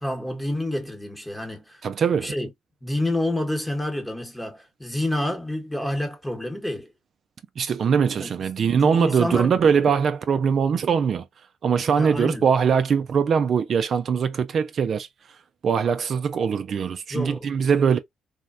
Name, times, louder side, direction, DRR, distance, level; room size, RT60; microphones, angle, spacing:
voice 1, 0.0-1.8 2.1-2.5 2.8-6.9 8.2-8.3 8.8-9.5 11.9-12.5 17.1-17.5, left 1 dB, 10° left, 1.0 m, -28 dB
voice 2, 1.8-2.3 7.6-11.3 11.6-15.1 15.6-18.0, right 6 dB, 55° right, 0.3 m, -22 dB
3.3 x 2.1 x 2.4 m
cardioid pair, 90°, 0 cm